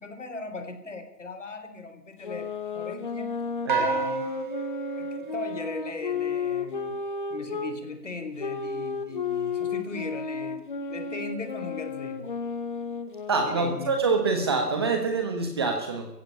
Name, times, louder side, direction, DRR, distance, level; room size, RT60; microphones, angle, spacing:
voice 1, 0.0-3.5 3.7-4.2 5.0-7.0 7.3-10.6 10.9-12.4 13.4-14.0, left 3 dB, 50° left, 8 dB, 3.9 m, -38 dB
sound 1, 2.2-7.7 8.4-14.0, left 5 dB, 30° left, 1.8 m, -33 dB
sound 2, 3.7-6.2, right 6 dB, 30° right, 2.5 m, -31 dB
voice 2, 13.3-16.1, right 4 dB, 15° right, 4 dB, 1.5 m, -25 dB
23.0 x 15.5 x 8.7 m, 0.79 s
figure-of-eight pair, 150°, 47 cm